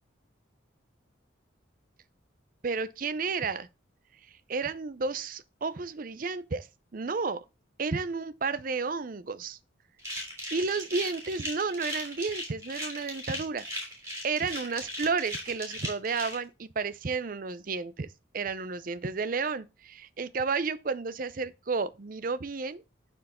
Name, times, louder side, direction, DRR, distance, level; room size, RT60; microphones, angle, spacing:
voice 1, 2.6-3.7 4.5-6.7 6.9-7.4 7.8-9.6 10.5-18.1 18.3-22.8, right 4 dB, 45° right, 0.5 m, -32 dB
sound 1, 10.0-16.3, equal, 15° right, 3.4 m, -37 dB
11.5 x 4.6 x 3.6 m
head